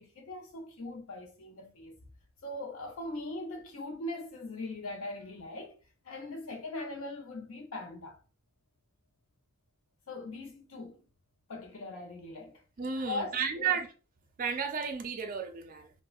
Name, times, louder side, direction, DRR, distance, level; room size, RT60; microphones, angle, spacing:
voice 1, 0.0-2.0 2.4-5.8 6.0-8.2 10.1-11.0 11.5-12.6 13.1-13.7, left 2 dB, 80° left, 0.7 m, -40 dB
voice 2, 12.8-13.9 14.4-15.9, right 6 dB, 40° right, 0.4 m, -33 dB
3.5 x 2.0 x 2.3 m
head